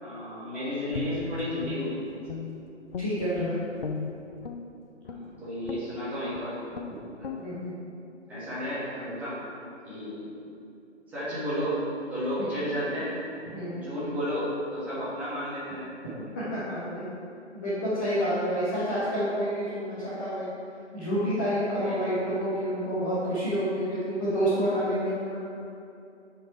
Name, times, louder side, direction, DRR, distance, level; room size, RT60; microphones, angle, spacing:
voice 1, 0.0-2.2 5.1-6.5 7.2-7.6 8.3-9.4 9.8-10.2 11.1-11.8 12.1-13.1 13.7-15.8 21.6-22.1, equal, 5° right, -12 dB, 1.5 m, -33 dB
Guitar, 0.9-2.6 2.9-4.6 5.0-5.3 5.7-5.9 6.3-6.5 6.7-6.9 7.2-7.4, left 5 dB, 50° left, 0.6 m, -35 dB
voice 2, 3.0-3.6 7.4-7.7 12.4-12.5 13.5-13.9 16.3-17.1 17.5-20.5 20.9-25.4, equal, 15° left, -11 dB, 0.8 m, -28 dB
9.1 x 4.6 x 4.4 m, 2.6 s
figure-of-eight pair, 140°, 36 cm